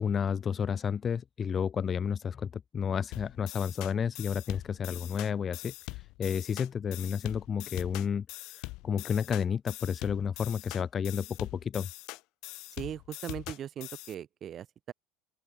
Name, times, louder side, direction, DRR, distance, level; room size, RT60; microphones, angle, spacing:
voice 1, 0.0-8.3 8.5-11.9, left 7 dB, 20° left, 0.4 m, -31 dB
sound 1, 3.1-14.1, left 23 dB, 55° left, 1.1 m, -43 dB
voice 2, 12.8-14.9, right 10 dB, 30° right, 1.7 m, -39 dB
open air
cardioid pair, 165°, 0 cm